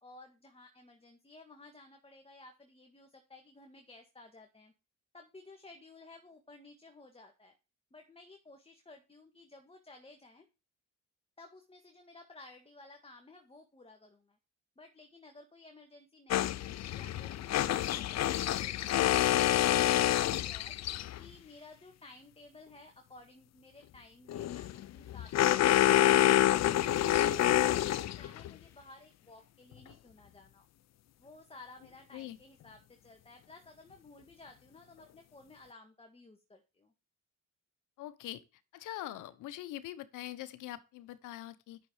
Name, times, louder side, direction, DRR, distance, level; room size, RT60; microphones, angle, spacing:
voice 1, 0.0-4.7 5.1-7.5 7.9-10.5 11.4-14.4 14.8-20.8 21.2-30.7 31.2-36.9, left 2 dB, 20° left, 1.9 m, -55 dB
sound 1, 16.3-21.3 24.3-28.5, left 13 dB, 60° left, 0.6 m, -27 dB
voice 2, 38.0-38.4 38.7-41.8, left 14 dB, 90° left, 1.0 m, -43 dB
10.5 x 6.7 x 5.0 m
cardioid pair, 90°, 30 cm